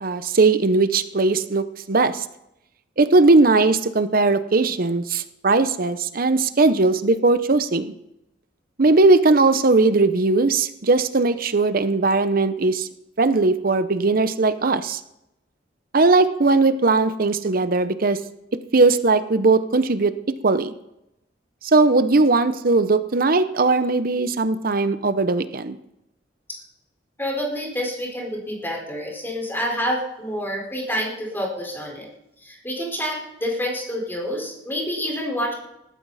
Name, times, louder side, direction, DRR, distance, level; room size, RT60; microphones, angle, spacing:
voice 1, 0.0-2.2 3.0-7.9 8.8-12.9 13.2-15.0 15.9-18.2 18.7-20.1 20.4-20.7 21.6-25.7, right 3 dB, 55° right, 12 dB, 0.8 m, -19 dB
voice 2, 27.2-32.1 32.4-35.5, equal, 10° left, -1 dB, 4.6 m, -28 dB
19.0 x 14.0 x 4.2 m, 0.85 s
head